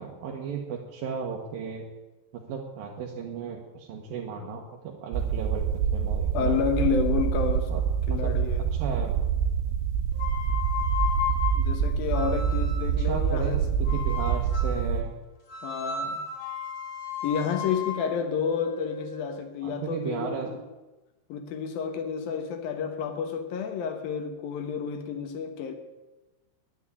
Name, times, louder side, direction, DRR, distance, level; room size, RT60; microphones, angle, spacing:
voice 1, 0.0-1.9 2.3-6.6 7.7-7.8 8.1-8.4 8.7-9.2 13.0-15.2 19.6-20.5, right 6 dB, 65° right, -1 dB, 2.6 m, -35 dB
sound 1, 5.1-15.0, right 7 dB, 80° right, 3.2 m, -26 dB
voice 2, 6.3-7.7 8.1-8.7 11.5-13.7 15.6-16.2 17.2-20.6 21.3-25.7, left 7 dB, 65° left, 7 dB, 2.6 m, -30 dB
sound 2, 10.1-13.0 13.9-14.9 15.5-19.5, left 6 dB, 40° left, 2.8 m, -34 dB
10.0 x 10.0 x 9.8 m, 1.1 s
omnidirectional pair, 5.3 m